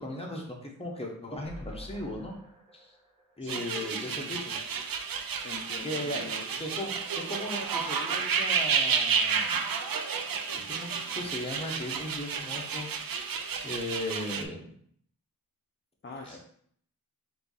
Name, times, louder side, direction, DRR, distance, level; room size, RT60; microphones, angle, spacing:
voice 1, 0.0-2.3 2.7-2.9 3.4-4.6 5.8-6.3 6.6-9.8 10.5-12.9 13.6-14.8 16.2-16.4, left 1 dB, 15° left, -1 dB, 1.1 m, -37 dB
sound 1, 1.4-4.7 5.0-5.1 5.4-5.5, left 1 dB, 20° right, 1.5 m, -49 dB
voice 2, 3.4-4.3 5.4-6.5 16.0-16.4, left 3 dB, 35° left, 0 dB, 0.6 m, -43 dB
sound 2, 3.5-14.4, right 6 dB, 75° right, 0.5 m, -31 dB
4.4 x 2.7 x 4.0 m, 0.64 s
wide cardioid pair, 70°, 35 cm